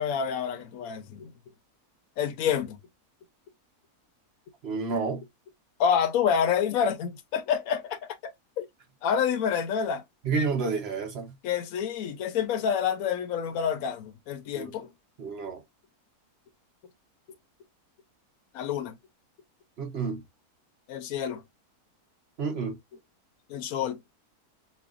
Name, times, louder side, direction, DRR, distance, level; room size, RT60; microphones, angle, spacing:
voice 1, 0.0-1.3 2.2-2.8 5.8-8.7 9.0-10.0 11.4-14.9 18.5-19.0 20.9-21.4 23.5-24.0, left 8 dB, 70° left, 1.1 m, -28 dB
voice 2, 4.6-5.2 10.2-11.3 14.5-14.7 15.2-15.6 19.8-20.2 22.4-22.8, right 4 dB, 50° right, 1.0 m, -30 dB
5.2 x 2.4 x 2.4 m
omnidirectional pair, 1.7 m